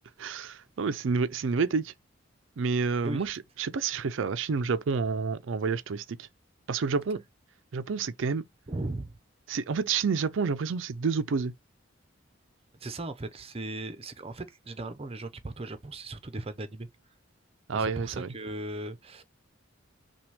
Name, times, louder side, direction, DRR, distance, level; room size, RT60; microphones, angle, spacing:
voice 1, 0.2-1.9 2.6-6.3 6.7-7.2 7.7-8.5 9.5-11.5 17.7-18.3, right 5 dB, 70° right, 0.5 m, -29 dB
voice 2, 8.7-9.2 12.8-16.9 17.7-19.2, right 2 dB, 30° right, 0.7 m, -37 dB
5.9 x 2.3 x 3.3 m
head